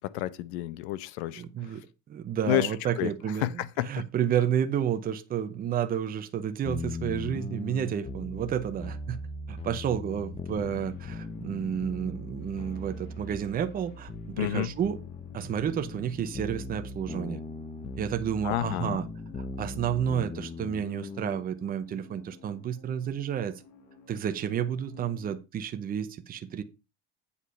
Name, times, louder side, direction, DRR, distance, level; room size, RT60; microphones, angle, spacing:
voice 1, 0.0-1.8 2.4-3.1 3.4-4.0 14.4-14.7 18.4-19.0, left 14 dB, 80° left, 0.9 m, -30 dB
voice 2, 1.4-1.8 2.1-3.5 3.8-9.2 9.5-15.0 15.3-17.4 18.0-19.0 19.6-23.6 24.1-26.6, right 9 dB, 25° right, 0.8 m, -31 dB
sound 1, 6.6-21.4, left 2 dB, 20° left, 1.0 m, -39 dB
sound 2, 10.8-25.4, left 5 dB, 60° left, 2.8 m, -55 dB
8.5 x 4.8 x 5.6 m
cardioid pair, 140°, 33 cm